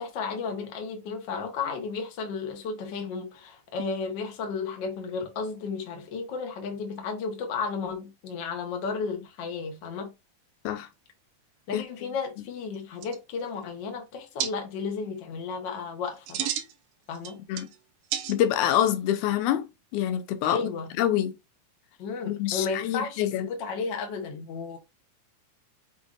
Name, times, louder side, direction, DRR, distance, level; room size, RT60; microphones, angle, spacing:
voice 1, 0.0-10.1 11.7-16.5 17.1-17.4 20.4-20.9 22.0-24.8, left 5 dB, 60° left, 1.2 m, -33 dB
sound 1, 12.7-12.8 13.0-13.6 14.4-14.5 16.1-16.7 17.1-17.8 18.1-18.7, right 10 dB, 80° right, 1.5 m, -32 dB
voice 2, 18.3-20.7 21.0-21.4 22.2-23.5, left 11 dB, 85° left, 2.1 m, -26 dB
6.9 x 2.6 x 2.4 m
omnidirectional pair, 3.5 m